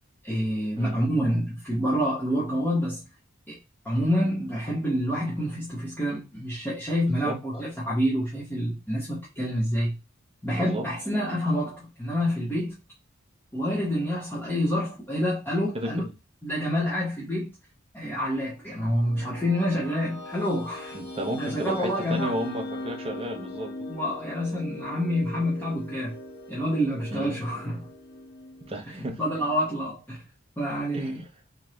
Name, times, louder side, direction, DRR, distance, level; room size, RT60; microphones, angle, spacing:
voice 1, 0.2-3.0 3.5-3.6 3.8-10.0 10.4-12.8 13.5-16.0 16.4-17.5 17.9-21.0 21.4-22.3 23.9-26.1 26.5-27.9 28.9-30.2 30.6-31.2, equal, 10° left, 0.9 m, -27 dB
voice 2, 10.5-10.9 15.7-16.1 20.9-23.7 27.1-27.3 28.6-29.2 30.9-31.1, right 1 dB, 30° right, 0.7 m, -33 dB
sound 1, 18.7-29.5, left 2 dB, 55° left, 1.3 m, -40 dB
3.5 x 2.9 x 3.0 m
head